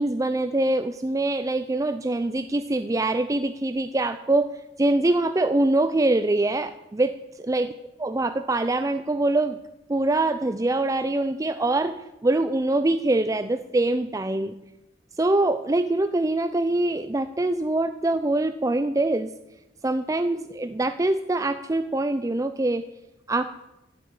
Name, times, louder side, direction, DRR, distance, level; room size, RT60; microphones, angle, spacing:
voice 1, 0.0-4.5 4.8-7.7 8.0-9.6 9.9-14.5 15.2-19.3 19.8-22.8 23.3-23.5, right 2 dB, 20° right, 10 dB, 0.5 m, -24 dB
15.0 x 8.5 x 8.2 m, 0.94 s
head